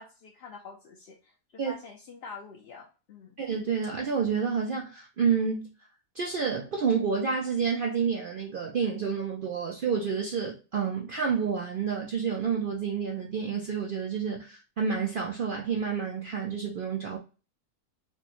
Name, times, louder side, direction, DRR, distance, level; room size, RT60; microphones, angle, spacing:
voice 1, 0.0-3.4, left 4 dB, 65° left, 0.6 m, -46 dB
voice 2, 3.4-5.7 6.1-17.2, right 6 dB, 90° right, 0.4 m, -29 dB
4.7 x 2.0 x 3.0 m
omnidirectional pair, 1.6 m